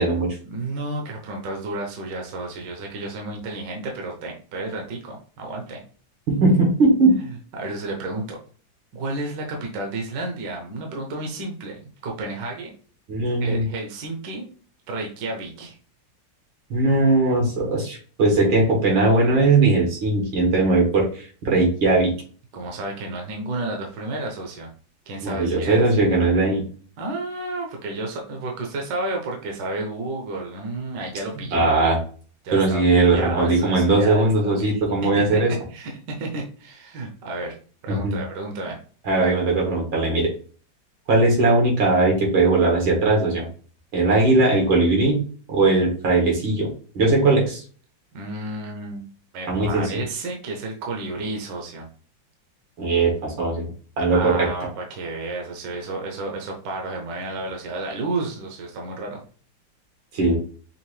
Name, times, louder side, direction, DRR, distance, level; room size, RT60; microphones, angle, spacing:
voice 1, 0.5-5.8 7.2-8.4 8.9-12.7 13.4-14.5 14.9-15.8 22.5-24.7 25.1-25.8 27.0-31.7 32.4-34.3 34.6-37.5 37.8-38.8 48.1-49.0 49.3-51.9 54.1-59.2, right 2 dB, 70° right, 1 dB, 1.4 m, -31 dB
voice 2, 6.3-7.2 13.1-13.6 16.7-22.1 25.2-26.6 31.5-32.0 32.5-35.5 38.0-38.2 39.0-40.3 41.1-43.5 43.9-45.2 45.5-47.6 49.5-50.0 52.8-53.6 54.0-54.5 60.1-60.4, right 2 dB, 90° right, -2 dB, 2.3 m, -19 dB
5.6 x 2.5 x 3.2 m, 0.42 s
omnidirectional pair, 2.1 m